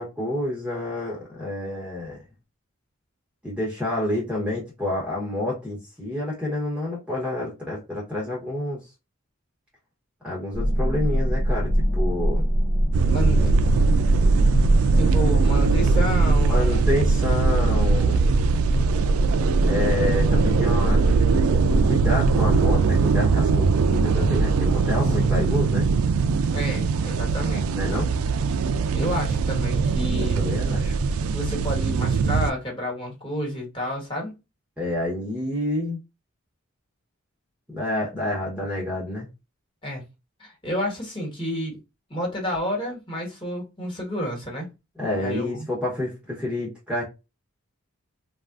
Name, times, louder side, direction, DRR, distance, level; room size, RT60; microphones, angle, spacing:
voice 1, 0.0-2.2 3.4-8.8 10.2-12.5 16.5-18.2 19.7-25.9 27.7-28.1 30.2-31.0 34.8-36.0 37.7-39.3 45.0-47.0, left 1 dB, 5° right, 0.9 m, -29 dB
sound 1, 10.5-22.8, equal, 50° left, 0.6 m, -24 dB
sound 2, 12.9-32.5, right 4 dB, 80° right, 0.3 m, -21 dB
voice 2, 13.1-13.5 14.9-16.8 24.8-25.3 26.5-27.6 28.9-30.4 31.3-34.4 39.8-40.0 40.4-41.8 42.1-44.7 45.1-45.6, equal, 25° left, 1.4 m, -30 dB
3.5 x 2.3 x 2.4 m
head